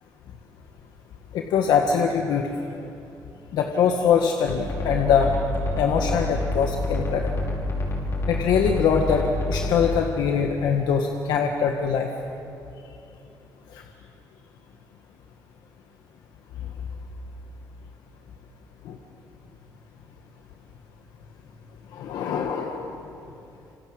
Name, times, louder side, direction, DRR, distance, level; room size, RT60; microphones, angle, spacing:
voice 1, 1.3-2.5 3.5-5.4 5.8-7.3 8.3-12.1 13.7-13.8 18.9-19.0 21.9-23.0, left 6 dB, 85° left, 3 dB, 1.7 m, -23 dB
sound 1, 4.5-10.0, left 1 dB, 40° left, 5.8 m, -28 dB
28.0 x 26.0 x 8.0 m, 2.7 s
cardioid pair, 155°, 7 cm